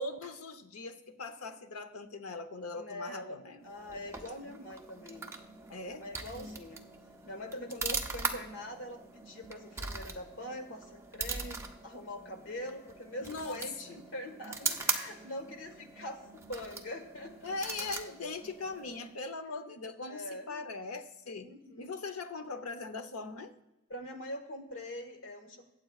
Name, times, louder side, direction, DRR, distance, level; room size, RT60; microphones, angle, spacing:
voice 1, 0.0-3.6 5.7-6.1 6.4-6.6 13.2-14.0 17.4-23.5, left 3 dB, 90° left, 0.9 m, -40 dB
voice 2, 2.7-5.3 5.8-6.8 7.2-17.9 20.1-20.6 21.3-22.0 23.9-25.7, left 1 dB, 60° left, 1.6 m, -43 dB
sound 1, 3.6-19.2, right 4 dB, 15° right, 0.7 m, -41 dB
23.5 x 8.0 x 2.4 m
head